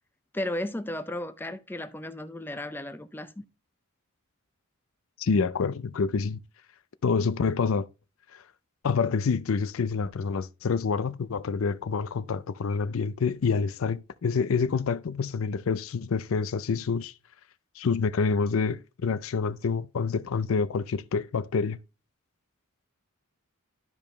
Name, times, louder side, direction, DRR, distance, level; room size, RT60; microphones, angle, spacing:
voice 1, 0.3-3.4, left 1 dB, 10° left, 0.6 m, -34 dB
voice 2, 5.2-6.4 7.0-7.9 8.3-8.4 8.8-17.1 17.8-21.8, left 5 dB, 70° left, 0.4 m, -27 dB
12.5 x 5.2 x 3.2 m
head